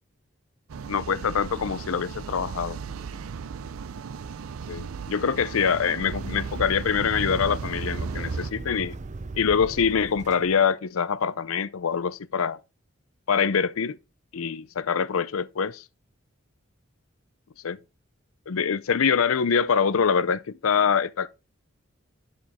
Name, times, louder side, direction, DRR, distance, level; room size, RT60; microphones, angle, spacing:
sound 1, 0.7-8.5, right 5 dB, 85° right, 0.4 m, -36 dB
voice 1, 0.9-2.8 4.7-9.0 9.3-12.6 13.3-14.0 14.3-15.8 17.6-17.8 18.5-21.3, left 6 dB, 85° left, 0.5 m, -24 dB
sound 2, 6.0-10.6, right 3 dB, 35° right, 0.5 m, -37 dB
11.0 x 5.1 x 3.6 m
head